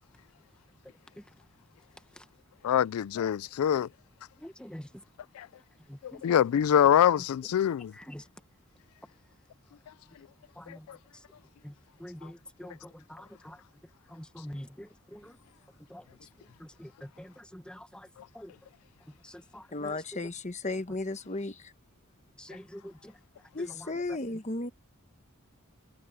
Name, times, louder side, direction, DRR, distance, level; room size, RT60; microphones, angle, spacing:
voice 1, 2.6-3.9 5.4-5.5 6.0-7.9 10.7-11.0, left 9 dB, 80° left, 0.3 m, -25 dB
voice 2, 4.4-4.9 5.9-6.0 8.1-8.2 10.6-10.8 11.6-11.7 12.0-12.8 13.1-13.6 14.1-15.3 15.9-16.0 16.8-16.9 17.2-18.1 18.3-18.5 19.5-19.9 22.4-22.9, equal, 5° left, 1.0 m, -45 dB
voice 3, 19.7-21.7 23.5-24.7, left 2 dB, 35° left, 1.3 m, -34 dB
head